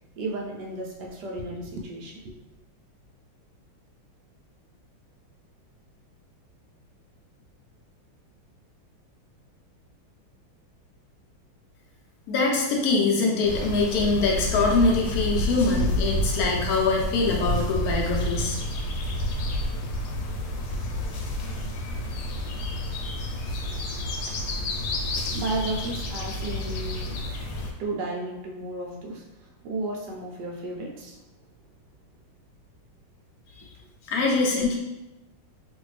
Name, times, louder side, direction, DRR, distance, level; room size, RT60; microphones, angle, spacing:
voice 1, 0.2-2.4 23.7-23.8 24.3-24.4 24.9-27.2 27.8-31.2, right 2 dB, 70° right, -1 dB, 1.1 m, -34 dB
voice 2, 12.3-18.6 33.6-33.7 34.1-34.8, left 3 dB, 70° left, -1 dB, 0.9 m, -23 dB
sound 1, 13.4-27.7, equal, 85° left, 1.4 m, -29 dB
3.1 x 2.6 x 3.2 m, 0.98 s
omnidirectional pair, 2.3 m